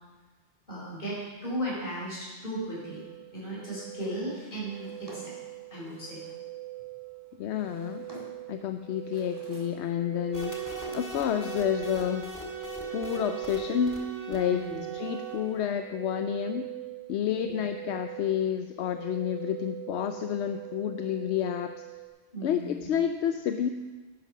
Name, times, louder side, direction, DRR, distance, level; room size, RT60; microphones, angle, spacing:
voice 1, 0.7-3.0 3.3-5.4 5.7-6.2 14.5-14.8 17.4-17.6 22.3-22.9, right 1 dB, 50° left, -6 dB, 4.9 m, -36 dB
sound 1, 2.7-22.1, right 17 dB, 90° right, 1.2 m, -42 dB
Drawer open or close, 4.6-6.5 7.3-8.5 8.9-9.8 10.1-11.3, equal, 20° right, 1.9 m, -52 dB
voice 2, 7.4-8.1 8.5-12.3 12.9-14.6 14.9-16.7 17.1-21.8 22.4-23.7, left 9 dB, 85° left, 8 dB, 0.9 m, -30 dB
sound 2, 10.3-15.7, right 3 dB, 15° left, 1.7 m, -39 dB
11.0 x 9.1 x 5.5 m, 1.3 s
omnidirectional pair, 1.1 m